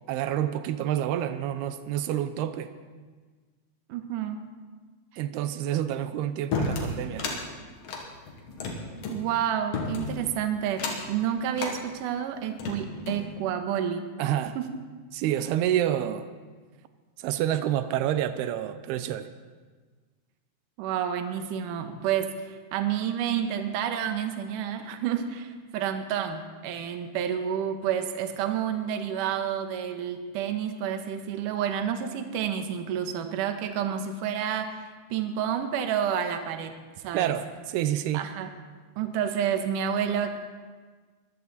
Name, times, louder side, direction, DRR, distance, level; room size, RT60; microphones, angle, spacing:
voice 1, 0.1-2.7 5.2-7.3 14.2-14.6 15.1-16.3 17.2-19.3 37.1-38.2, right 11 dB, 90° right, 11 dB, 2.7 m, -28 dB
voice 2, 3.9-4.4 9.1-14.1 14.6-14.7 20.8-34.9 35.1-36.7 37.0-37.3 38.1-38.5 39.0-40.4, right 9 dB, 70° right, 6 dB, 2.4 m, -29 dB
sound 1, 6.5-7.4 7.8-9.2 9.7-10.2 10.7-11.1 11.5-11.8 12.4-13.3, left 4 dB, 65° left, 3.5 m, -32 dB
22.5 x 14.5 x 4.1 m, 1.4 s
omnidirectional pair, 4.4 m